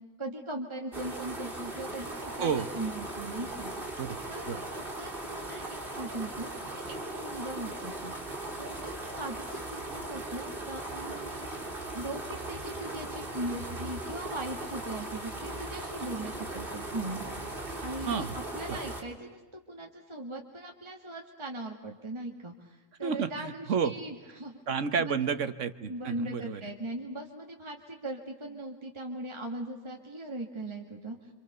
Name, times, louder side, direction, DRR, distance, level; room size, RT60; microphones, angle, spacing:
voice 1, 0.2-8.1 8.6-11.6 11.9-24.6 25.0-25.1 25.9-31.3, right 2 dB, 20° right, 1 dB, 2.0 m, -40 dB
sound 1, 0.9-19.0, right 2 dB, 45° right, 3.7 m, -38 dB
voice 2, 2.4-2.9 4.0-4.2 4.5-4.7 18.1-18.4 18.7-18.8 23.0-24.0 24.7-26.6, right 6 dB, 75° right, 11 dB, 1.5 m, -31 dB
27.5 x 27.0 x 6.8 m, 1.2 s
omnidirectional pair, 1.3 m